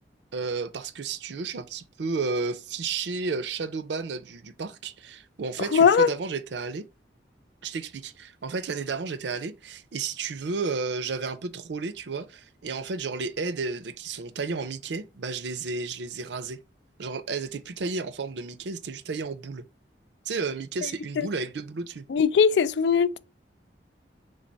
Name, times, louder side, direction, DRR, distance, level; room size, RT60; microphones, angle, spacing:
voice 1, 0.3-6.9 7.6-16.6 17.0-19.6 20.3-22.0, right 4 dB, 75° right, 0.5 m, -32 dB
voice 2, 5.7-6.1 22.1-23.2, left 6 dB, 70° left, 0.3 m, -19 dB
4.0 x 3.3 x 3.3 m
head